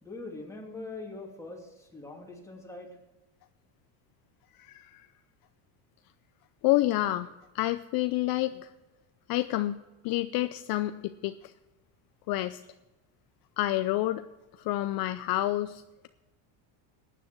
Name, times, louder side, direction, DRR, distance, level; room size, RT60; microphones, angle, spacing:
voice 1, 0.0-3.0, left 2 dB, 5° left, -1 dB, 2.7 m, -42 dB
voice 2, 4.6-5.0 6.6-8.7 9.3-11.5 12.3-12.6 13.6-14.2 14.6-16.1, left 16 dB, 55° left, 11 dB, 0.6 m, -29 dB
15.5 x 10.0 x 4.6 m, 1.0 s
cardioid pair, 140°, 44 cm